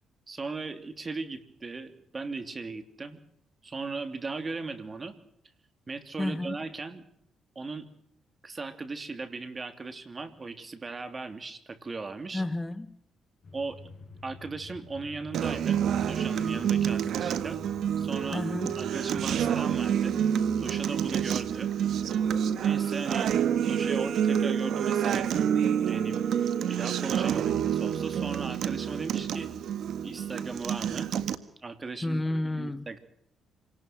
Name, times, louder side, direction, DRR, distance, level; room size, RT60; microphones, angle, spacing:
voice 1, 0.3-3.2 3.6-5.1 5.9-7.0 7.5-7.9 8.4-12.4 13.5-13.8 14.2-17.6 18.0-18.4 18.8-21.7 22.1-22.2 22.6-23.4 23.6-25.5 25.9-26.2 26.7-29.5 30.0-31.1 31.6-32.2 32.6-33.0, right 3 dB, 30° right, 3.0 m, -37 dB
voice 2, 6.2-6.6 12.3-13.0 18.3-18.8 32.0-32.9, left 1 dB, 15° left, 0.9 m, -31 dB
sound 1, 13.4-19.8, left 3 dB, 40° left, 5.1 m, -48 dB
Acoustic guitar, 15.3-31.4, right 9 dB, 70° right, 1.5 m, -28 dB
26.5 x 19.0 x 6.0 m
cardioid pair, 90°, 0 cm